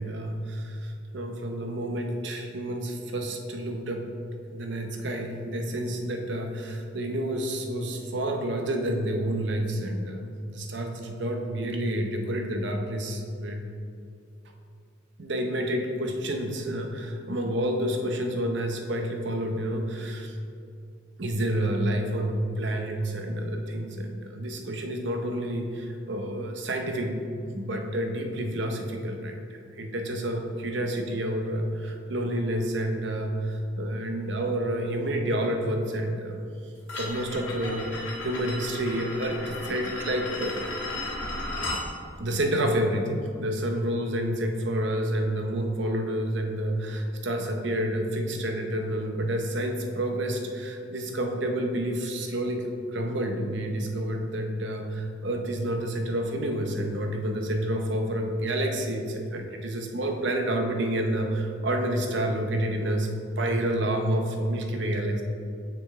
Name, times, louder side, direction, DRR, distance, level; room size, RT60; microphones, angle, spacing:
voice 1, 0.0-4.1 4.5-13.6 15.2-20.3 21.2-36.4 36.9-40.6 42.2-63.1 63.4-65.2, right 1 dB, 65° right, 3 dB, 0.8 m, -29 dB
sound 1, 36.9-41.8, left 2 dB, 70° left, 1.4 m, -35 dB
6.9 x 5.9 x 3.3 m, 2.5 s
head